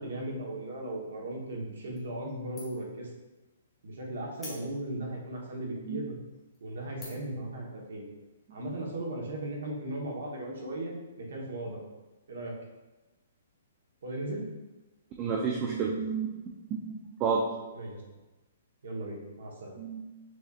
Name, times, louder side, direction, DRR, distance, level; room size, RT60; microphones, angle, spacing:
voice 1, 0.0-3.1 3.8-6.2 6.6-8.1 8.5-11.8 12.3-12.5 14.0-14.5 17.7-18.0 18.8-19.8, right 1 dB, 70° right, -2 dB, 1.2 m, -37 dB
sound 1, 2.0-2.3 2.6-3.0 3.4-3.5 4.3-5.1 5.7-5.8 6.3-6.6 7.0-7.4, left 2 dB, 5° left, 1.1 m, -46 dB
voice 2, 15.2-16.3 16.7-16.9 17.2-17.4 19.8-20.1, right 5 dB, 20° right, -2 dB, 0.4 m, -30 dB
6.3 x 2.7 x 2.5 m, 1.1 s
hypercardioid pair, 175°, 0 cm